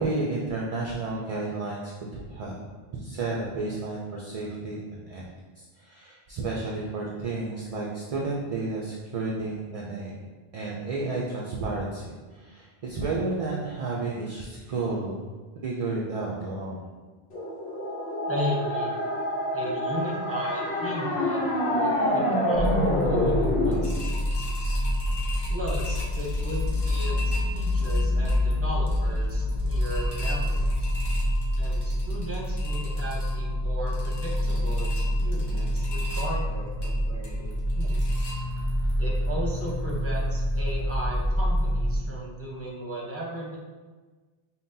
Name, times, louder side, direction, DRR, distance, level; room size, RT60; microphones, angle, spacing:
voice 1, 0.0-2.6 2.9-5.2 5.6-10.1 10.5-15.3 15.6-16.9, right 3 dB, 55° right, -3 dB, 0.4 m, -32 dB
sound 1, 17.3-23.8, left 1 dB, 90° left, 1.0 m, -26 dB
voice 2, 18.3-18.9 19.5-24.8 25.5-27.2 27.5-30.9 31.5-38.1 39.0-43.6, equal, 15° right, -4 dB, 0.7 m, -36 dB
sound 2, 22.5-42.0, left 1 dB, 55° left, 1.1 m, -27 dB
sound 3, 23.7-38.9 39.2-39.3 39.7-39.8, left 1 dB, 30° left, 0.6 m, -42 dB
5.4 x 2.2 x 2.6 m, 1.4 s
omnidirectional pair, 1.0 m